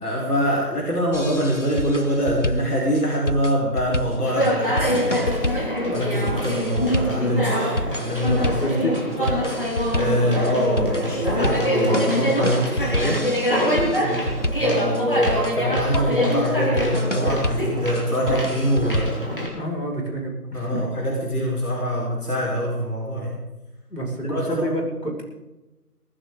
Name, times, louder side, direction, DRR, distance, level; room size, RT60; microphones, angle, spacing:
voice 1, 0.0-8.8 9.2-9.3 9.9-13.2 14.6-19.2 20.5-23.3 24.3-24.7, equal, 65° left, -4 dB, 4.9 m, -24 dB
sound 1, 1.1-19.3, left 1 dB, 50° left, 0.6 m, -29 dB
Conversation, 4.2-19.5, equal, 35° left, 2.9 m, -25 dB
voice 2, 8.6-9.0 14.0-14.2 19.5-20.9 23.9-25.2, equal, 85° left, 0 dB, 6.3 m, -28 dB
19.0 x 17.0 x 4.0 m, 1.1 s
figure-of-eight pair, 180°, 48 cm